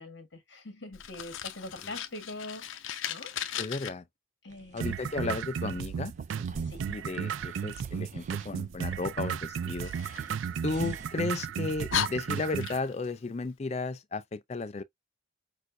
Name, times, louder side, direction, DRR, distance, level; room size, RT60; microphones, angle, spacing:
voice 1, 0.0-3.3 4.4-5.2 6.6-6.9, left 2 dB, 65° left, 1.4 m, -44 dB
Fire, 0.9-3.9 9.8-11.1 11.5-11.6 11.9-13.1, left 9 dB, 85° left, 0.6 m, -36 dB
voice 2, 3.6-4.1 4.7-6.1 6.9-9.9 10.6-14.8, left 3 dB, 35° left, 0.4 m, -34 dB
sound 1, 4.5-11.1, right 2 dB, 40° right, 0.6 m, -51 dB
sound 2, 4.8-12.8, right 7 dB, 80° right, 0.3 m, -34 dB
6.3 x 2.6 x 2.5 m
head